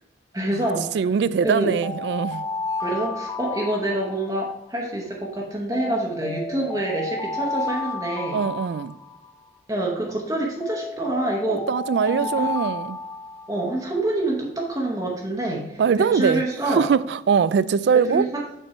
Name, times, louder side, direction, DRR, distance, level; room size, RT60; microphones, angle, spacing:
voice 1, 0.3-1.0 1.4-1.7 2.8-8.5 9.7-11.7 12.1-12.5 13.5-16.8 18.1-18.4, right 1 dB, 20° right, 0.9 m, -26 dB
voice 2, 0.9-2.4 8.3-8.9 11.5-13.0 15.8-18.3, right 6 dB, 70° right, 0.3 m, -22 dB
sound 1, 1.4-4.6 5.7-9.5 10.6-13.8, left 3 dB, 15° left, 0.4 m, -32 dB
6.6 x 6.0 x 4.2 m
head